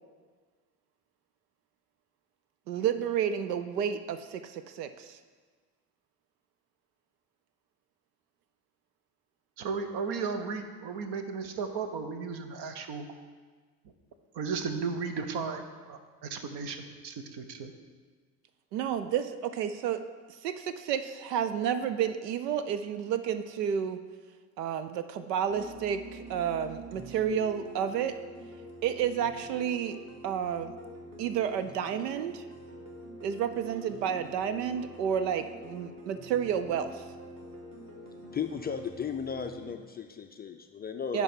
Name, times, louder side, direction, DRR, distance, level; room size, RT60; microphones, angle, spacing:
voice 1, 2.7-5.2 18.7-20.0 20.3-24.0 24.6-28.1 28.8-30.0 30.2-30.7 31.2-32.4 33.2-37.0 41.1-41.2, right 8 dB, 75° right, 11 dB, 0.6 m, -31 dB
voice 2, 9.6-13.1 14.3-15.6 15.9-17.7, right 5 dB, 50° right, 7 dB, 1.0 m, -35 dB
sound 1, 25.5-39.7, right 1 dB, 30° right, 1.5 m, -46 dB
voice 3, 38.3-41.2, left 7 dB, 20° left, 5 dB, 0.4 m, -35 dB
10.0 x 3.6 x 5.8 m, 1.5 s
figure-of-eight pair, 55°, 49 cm